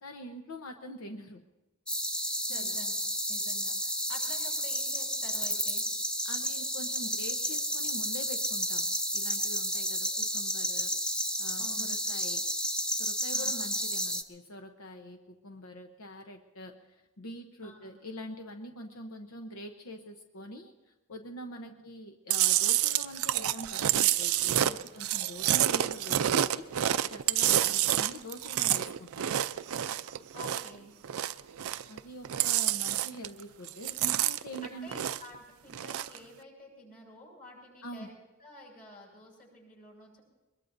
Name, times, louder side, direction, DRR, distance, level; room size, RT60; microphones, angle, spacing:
voice 1, 0.0-1.4 2.2-2.8 6.2-10.9 11.4-12.5 13.0-20.7 21.1-26.7 27.1-29.4 31.9-35.0 37.8-38.1, equal, 75° left, 5 dB, 0.9 m, -44 dB
sound 1, 1.9-14.2, equal, 5° left, 0.6 m, -31 dB
voice 2, 2.5-2.9 3.3-5.8 11.6-12.0 13.3-13.7 17.6-17.9 27.7-27.8 30.3-30.9 34.6-38.1 38.4-40.2, left 1 dB, 40° left, -2 dB, 7.3 m, -50 dB
Chewing mastication, 22.3-30.8 31.0-32.0 32.2-33.4 33.7-35.4 35.7-36.2, right 12 dB, 80° right, 0.5 m, -28 dB
23.0 x 21.5 x 2.6 m, 1.1 s
head